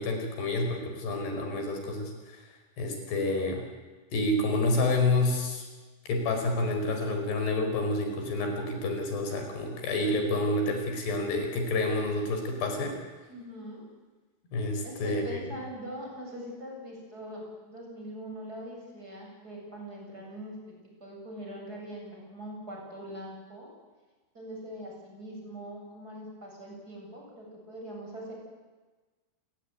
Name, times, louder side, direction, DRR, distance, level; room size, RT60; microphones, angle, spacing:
voice 1, 0.0-2.4 2.8-3.6 4.1-5.7 6.1-12.9 14.5-15.4, left 2 dB, 85° left, 4 dB, 6.9 m, -29 dB
voice 2, 13.3-13.8 14.8-20.5 21.0-23.7 24.3-28.3, equal, 20° right, -1 dB, 8.4 m, -42 dB
28.5 x 21.5 x 9.4 m, 1.3 s
omnidirectional pair, 4.6 m